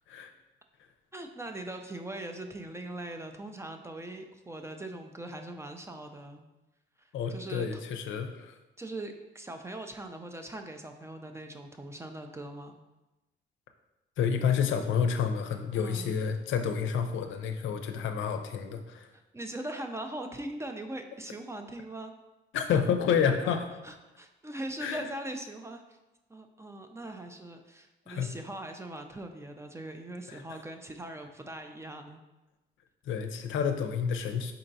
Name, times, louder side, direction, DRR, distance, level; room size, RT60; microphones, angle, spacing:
voice 1, 1.1-6.4 7.0-7.8 8.8-12.8 15.7-16.1 19.1-22.1 23.4-23.5 23.8-26.0 26.3-32.2, right 1 dB, 15° right, 5 dB, 0.3 m, -41 dB
voice 2, 7.1-8.6 14.2-19.1 22.5-23.7 24.8-25.0 28.1-28.3 30.3-30.4 33.1-34.5, left 7 dB, 75° left, 6 dB, 0.5 m, -29 dB
4.4 x 3.9 x 2.6 m, 1.0 s
cardioid pair, 90°, 20 cm